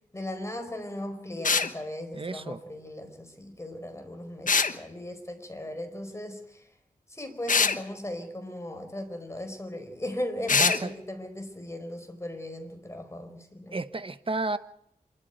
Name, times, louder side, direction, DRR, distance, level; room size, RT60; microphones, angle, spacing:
voice 1, 0.1-6.6 7.1-13.8, left 1 dB, 20° left, 4.8 m, -37 dB
sound 1, 1.4-1.7 4.5-4.7 7.5-7.8 10.5-10.8, left 5 dB, 60° left, 1.2 m, -22 dB
voice 2, 2.1-2.6 10.5-10.9 13.7-14.6, right 3 dB, 35° right, 1.2 m, -32 dB
26.5 x 12.5 x 9.3 m
wide cardioid pair, 85°, 15 cm